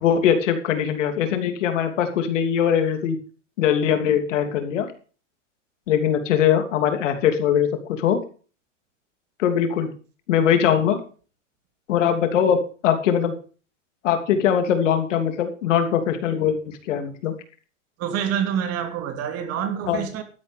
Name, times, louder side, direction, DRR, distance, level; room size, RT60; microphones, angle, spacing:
voice 1, 0.0-3.2 3.6-4.9 5.9-8.2 9.4-9.9 10.3-11.0 11.9-12.6 12.8-13.3 14.0-17.3 19.9-20.0, left 8 dB, 75° left, 3.1 m, -21 dB
voice 2, 18.0-20.2, right 8 dB, 40° right, 2.8 m, -27 dB
13.0 x 9.7 x 5.3 m
hypercardioid pair, 130°, 37 cm